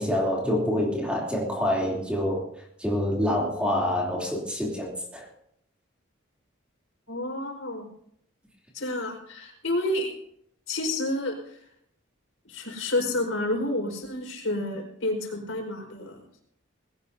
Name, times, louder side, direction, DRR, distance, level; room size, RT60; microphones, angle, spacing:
voice 1, 0.0-2.5 2.8-5.2, left 1 dB, 5° right, -2 dB, 3.2 m, -26 dB
voice 2, 7.1-7.9 8.7-10.1 10.7-11.3 12.4-16.4, left 1 dB, 75° left, 1 dB, 4.8 m, -29 dB
20.5 x 17.5 x 2.8 m, 0.70 s
head